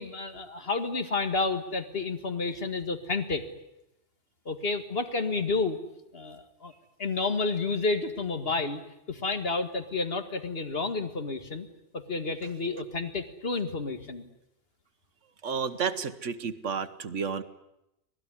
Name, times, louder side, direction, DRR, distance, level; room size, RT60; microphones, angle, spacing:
voice 1, 0.0-3.4 4.5-5.8 6.1-6.7 7.0-8.8 9.1-11.7 11.9-14.3, left 3 dB, 55° left, 7 dB, 2.1 m, -30 dB
voice 2, 15.4-17.4, right 6 dB, 80° right, 11 dB, 1.6 m, -31 dB
25.5 x 18.5 x 9.9 m, 0.88 s
omnidirectional pair, 1.2 m